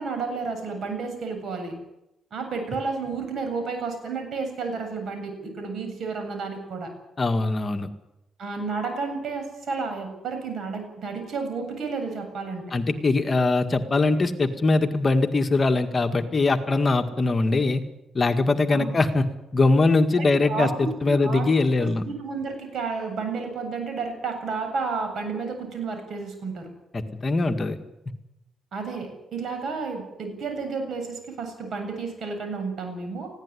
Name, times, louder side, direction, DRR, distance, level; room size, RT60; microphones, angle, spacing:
voice 1, 0.0-1.8 2.3-6.9 8.4-12.6 18.7-19.0 20.1-21.5 21.8-26.7 28.7-33.3, right 4 dB, 60° right, 6 dB, 7.8 m, -31 dB
voice 2, 7.2-7.9 12.7-17.8 18.1-19.2 19.5-22.0 26.9-27.8, left 3 dB, 30° left, 6 dB, 1.8 m, -22 dB
20.0 x 16.0 x 9.9 m, 0.92 s
cardioid pair, 90°, 0 cm